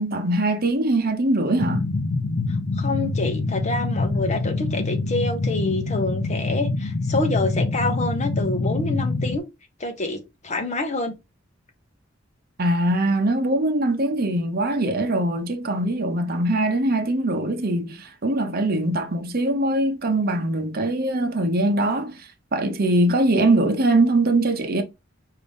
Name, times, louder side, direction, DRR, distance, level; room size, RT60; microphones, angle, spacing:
voice 1, 0.0-1.9 12.6-24.8, right 1 dB, 50° right, 0.8 m, -22 dB
sound 1, 1.6-9.4, left 3 dB, 60° left, 0.5 m, -25 dB
voice 2, 2.8-9.4 9.8-11.1, left 2 dB, 35° left, 0.9 m, -27 dB
5.1 x 2.7 x 3.5 m
head